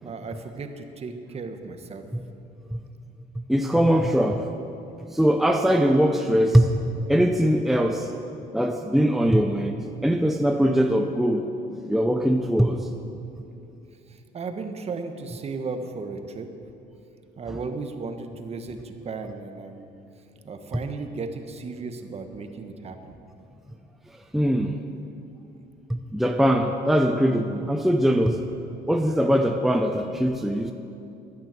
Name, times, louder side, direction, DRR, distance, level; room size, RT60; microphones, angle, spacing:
voice 1, 0.0-2.1 14.1-16.5 17.4-19.9 20.4-23.1, right 4 dB, 40° right, 6 dB, 1.3 m, -35 dB
voice 2, 3.5-4.5 5.1-6.7 7.1-8.1 8.5-12.9 24.3-24.8 25.9-28.4 28.9-30.7, equal, ahead, 4 dB, 0.6 m, -21 dB
13.5 x 10.5 x 7.7 m, 2.7 s
cardioid pair, 110°, 17 cm